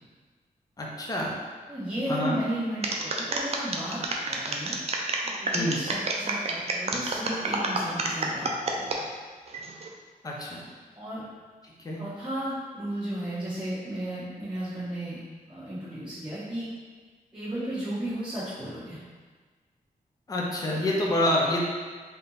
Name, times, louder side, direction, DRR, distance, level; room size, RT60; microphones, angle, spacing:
voice 1, 0.8-1.3 2.1-2.4 5.5-5.8 10.2-10.6 11.6-12.0 20.3-21.6, left 1 dB, 25° left, -2 dB, 0.5 m, -27 dB
voice 2, 1.7-4.7 5.4-9.0 10.9-11.2 12.0-15.2 15.5-16.7 17.3-19.0, right 1 dB, 5° right, -17 dB, 1.2 m, -34 dB
sound 1, 2.8-9.0 9.5-9.9, right 3 dB, 40° right, 0.4 m, -29 dB
3.5 x 2.8 x 4.0 m, 1.5 s
wide cardioid pair, 180°, 15 cm